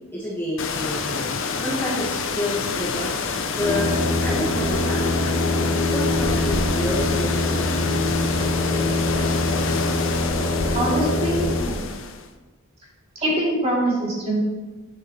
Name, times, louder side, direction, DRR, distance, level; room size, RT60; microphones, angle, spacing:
voice 1, 0.1-1.2 1.6-3.1 3.6-3.9 4.2-5.3 5.9-8.2, left 1 dB, 10° left, -8 dB, 1.5 m, -29 dB
sound 1, 0.6-12.3, left 4 dB, 65° left, 0.6 m, -28 dB
sound 2, 3.6-11.5, left 2 dB, 35° left, 2.1 m, -24 dB
voice 2, 10.7-11.9 13.2-14.4, right 1 dB, 30° right, -6 dB, 2.8 m, -23 dB
9.2 x 6.8 x 3.1 m, 1.2 s
head